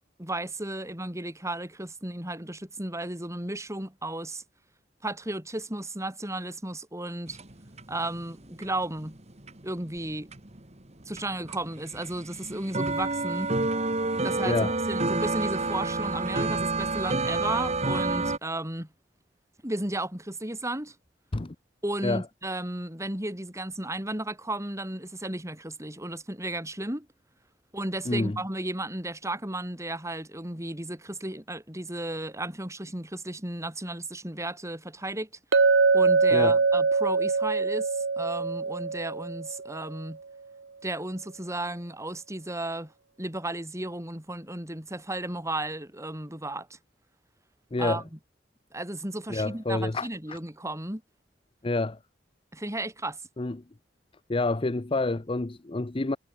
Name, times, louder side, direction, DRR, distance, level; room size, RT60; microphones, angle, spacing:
voice 1, 0.2-4.4 5.0-7.4 7.9-9.2 9.6-10.3 11.0-13.5 14.2-18.9 19.6-20.9 21.8-27.1 27.7-35.3 35.9-40.2 40.8-42.9 43.2-46.8 47.8-48.0 48.7-51.0 52.5-53.2, right 1 dB, 15° right, 6.7 m, -34 dB
sound 1, 7.3-10.6 10.9-18.4, right 3 dB, 35° right, 2.5 m, -29 dB
voice 2, 14.4-14.7 21.3-21.6 22.0-22.2 28.1-28.4 36.3-36.6 47.7-48.0 49.3-50.4 51.6-52.0 53.4-53.6 54.3-56.2, left 2 dB, 30° left, 0.7 m, -28 dB
Chink clink, 35.5-39.7, right 4 dB, 75° right, 0.8 m, -23 dB
head